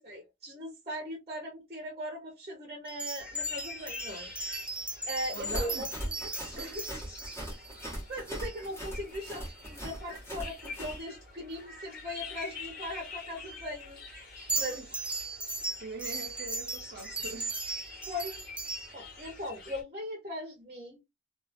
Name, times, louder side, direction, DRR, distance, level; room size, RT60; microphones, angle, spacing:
voice 1, 0.0-4.3 5.1-6.8 7.8-14.0 14.5-14.9 15.6-15.7 18.1-18.5 18.9-21.0, equal, 30° right, 0.9 m, -39 dB
sound 1, 2.9-8.9 9.4-9.5 9.8-10.0 14.4-18.9, right 2 dB, 5° right, 0.4 m, -37 dB
sound 2, 3.2-19.8, left 4 dB, 50° left, 1.5 m, -47 dB
sound 3, 5.3-11.0, equal, 15° left, 1.2 m, -40 dB
voice 2, 5.3-5.9 6.6-6.8 14.5-14.9 15.8-17.6, right 2 dB, 55° right, 0.8 m, -42 dB
2.7 x 2.5 x 2.5 m
head